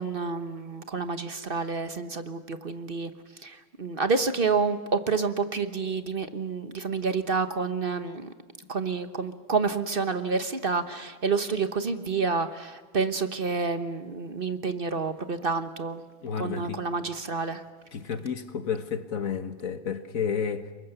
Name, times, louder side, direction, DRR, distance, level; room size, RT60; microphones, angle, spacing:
voice 1, 0.0-3.1 3.4-8.3 8.7-16.0 16.4-17.6, right 4 dB, 40° right, 0.9 m, -29 dB
voice 2, 16.2-16.8 17.9-20.7, left 6 dB, 50° left, 1.5 m, -31 dB
29.5 x 21.5 x 6.7 m
omnidirectional pair, 2.1 m